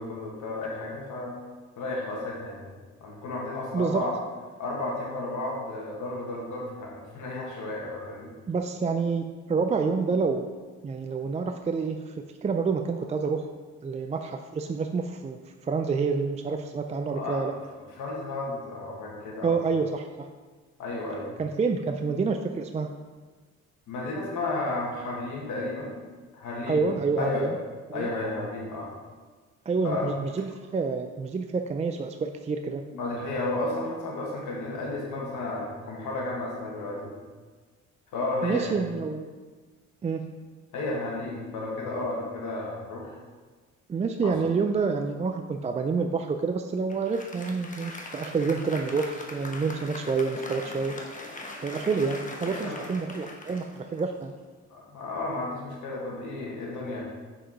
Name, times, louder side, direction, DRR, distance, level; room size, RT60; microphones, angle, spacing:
voice 1, 0.0-1.4 1.8-2.7 3.0-4.2 4.6-8.3 17.1-17.4 18.0-19.6 20.8-21.3 23.9-26.0 26.3-26.8 27.2-27.5 27.9-28.9 29.8-30.1 32.9-37.1 38.1-38.7 40.7-43.2 44.2-44.3 52.4-52.9 54.7-57.0, left 2 dB, 80° left, -3 dB, 1.8 m, -33 dB
voice 2, 3.7-4.1 8.5-10.5 10.8-13.5 13.8-17.5 19.4-20.3 21.4-22.9 26.7-27.5 27.9-28.1 29.7-32.8 38.4-39.3 40.0-40.3 43.9-51.0 51.6-54.3, right 4 dB, 25° right, 6 dB, 0.4 m, -28 dB
Applause, 46.9-54.5, left 2 dB, 25° left, 1.1 m, -41 dB
6.4 x 4.8 x 4.6 m, 1.4 s
cardioid pair, 90°, 30 cm